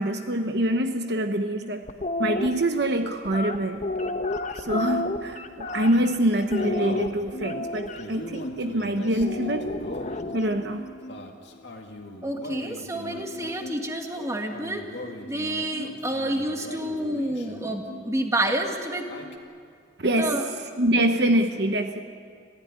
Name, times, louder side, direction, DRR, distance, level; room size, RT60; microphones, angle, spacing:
voice 1, 0.0-1.8 2.2-3.9 4.6-9.7 10.3-10.8 20.0-20.3 20.8-22.0, right 1 dB, 55° right, 6 dB, 1.1 m, -25 dB
sound 1, 1.9-2.5 3.3-6.2 6.5-8.0 9.2-10.6, left 2 dB, 35° left, 1.1 m, -30 dB
sound 2, 5.3-18.4 18.7-19.4, left 1 dB, 60° left, 2.2 m, -41 dB
voice 2, 12.2-14.9 15.3-19.1 20.2-20.5, right 1 dB, 15° right, 3 dB, 1.8 m, -29 dB
27.0 x 16.5 x 9.6 m, 2.2 s
head